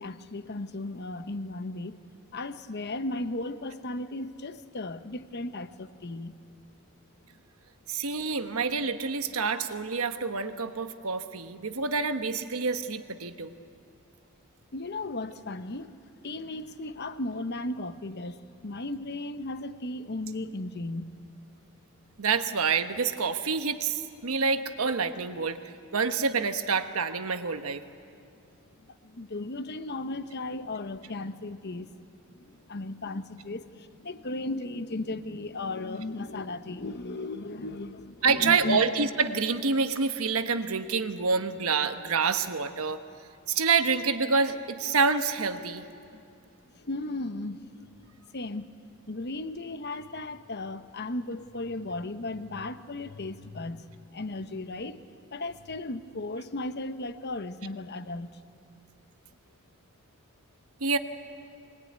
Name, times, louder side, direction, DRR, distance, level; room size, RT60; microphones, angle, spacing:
voice 1, 0.0-2.0 2.3-6.4 14.7-16.0 16.2-21.2 29.0-32.0 32.4-38.9 46.1-46.2 46.7-47.7 48.3-48.7 49.1-55.0 55.3-58.3, left 2 dB, 50° left, 1.0 m, -36 dB
voice 2, 7.9-13.5 22.2-25.6 25.9-27.8 38.2-43.0 43.5-45.8 60.8-61.0, right 5 dB, 80° right, 1.2 m, -27 dB
23.0 x 20.5 x 9.5 m
head